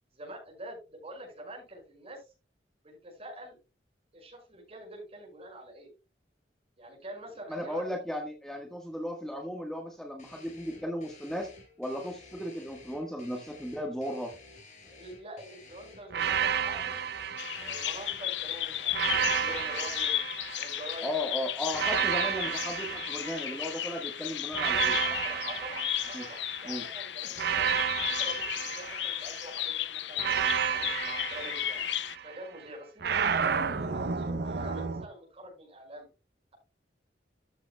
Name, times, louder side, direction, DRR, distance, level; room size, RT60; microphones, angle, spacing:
voice 1, 0.1-2.2 2.8-3.6 4.1-5.9 6.8-7.8 14.9-17.0 17.6-20.1 20.6-21.1 25.0-27.7 28.0-30.2 30.6-31.9 32.2-36.1, right 1 dB, 35° right, 0 dB, 5.8 m, -46 dB
voice 2, 7.5-11.5 11.8-14.3 21.0-25.0 26.1-26.2 26.6-26.8, left 1 dB, 5° left, 1 dB, 1.4 m, -35 dB
sound 1, 10.2-18.9, left 3 dB, 45° left, 5.1 m, -53 dB
sound 2, 16.1-18.3 18.9-21.1 21.7-23.9 24.5-26.7 27.4-29.5 30.2-32.3 33.0-35.0, right 7 dB, 65° right, 0.7 m, -31 dB
Bird vocalization bird call bird song, 17.4-32.2, left 13 dB, 75° left, 0.6 m, -34 dB
13.5 x 8.2 x 2.2 m, 0.29 s
head